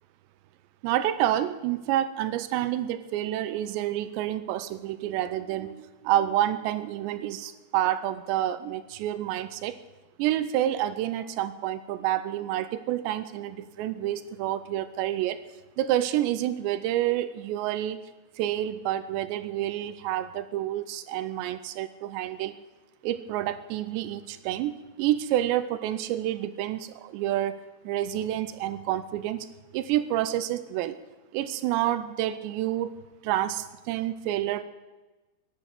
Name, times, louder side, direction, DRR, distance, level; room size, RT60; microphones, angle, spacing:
voice 1, 0.8-9.8 10.2-15.4 15.8-18.0 18.4-22.6 23.0-27.6 27.8-29.5 29.7-31.0 31.3-33.0 33.2-34.6, right 12 dB, 85° right, 14 dB, 2.8 m, -28 dB
15.0 x 10.5 x 7.7 m, 1.2 s
omnidirectional pair, 5.2 m